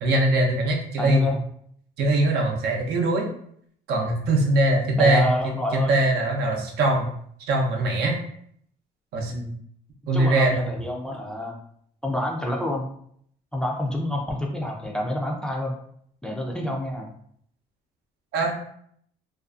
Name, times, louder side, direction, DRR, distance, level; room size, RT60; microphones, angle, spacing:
voice 1, 0.0-1.3 2.0-3.3 3.9-5.3 5.7-7.1 7.5-8.2 9.1-9.4 10.1-10.6 18.3-18.5, right 1 dB, 70° right, 1 dB, 0.6 m, -21 dB
voice 2, 1.0-1.4 5.0-6.0 9.3-9.5 10.1-11.6 12.0-12.9 13.5-15.7 16.2-17.1, left 1 dB, 5° left, 0 dB, 0.4 m, -28 dB
2.5 x 2.3 x 2.4 m, 0.66 s
cardioid pair, 110°, 17 cm